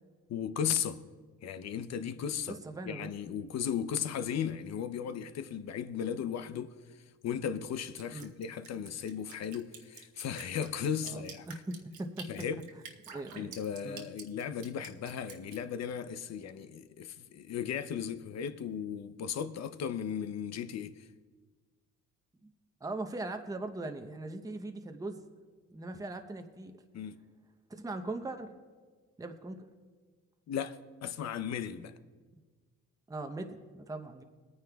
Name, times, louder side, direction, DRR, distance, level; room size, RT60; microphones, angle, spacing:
voice 1, 0.3-1.0 1.4-2.6 2.8-11.5 12.3-12.6 13.4-21.1 26.9-27.2 30.5-31.9, left 8 dB, 60° left, 0.6 m, -36 dB
voice 2, 2.5-3.1 8.1-8.3 11.1-12.3 13.1-13.6 13.8-14.1 22.4-22.5 22.8-25.2 25.7-26.8 27.7-28.5 29.2-29.6 33.1-34.2, right 2 dB, 10° right, 0.8 m, -40 dB
Drip, 8.0-15.6, right 6 dB, 70° right, 1.2 m, -48 dB
21.5 x 9.5 x 2.3 m
cardioid pair, 90°, 30 cm